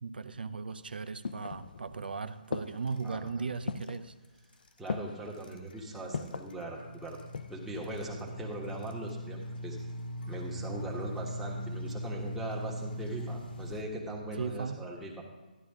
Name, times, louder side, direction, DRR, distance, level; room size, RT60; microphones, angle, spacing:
voice 1, 0.0-4.1 14.4-14.8, right 5 dB, 80° right, 12 dB, 0.7 m, -37 dB
sound 1, 0.7-2.0 2.5-3.0 3.7-4.1 4.9-5.3 6.1-6.5 7.1-7.7 8.0-8.1, left 5 dB, 70° left, 0.6 m, -38 dB
sound 2, 2.7-3.3 3.5-3.9 4.5-4.9 5.3-13.8, equal, 85° left, 1.6 m, -40 dB
voice 2, 3.0-3.4 4.8-7.2 7.5-9.8 10.3-15.2, right 1 dB, 5° right, -3 dB, 1.4 m, -40 dB
12.5 x 11.0 x 3.6 m, 1.2 s
hypercardioid pair, 150°, 5 cm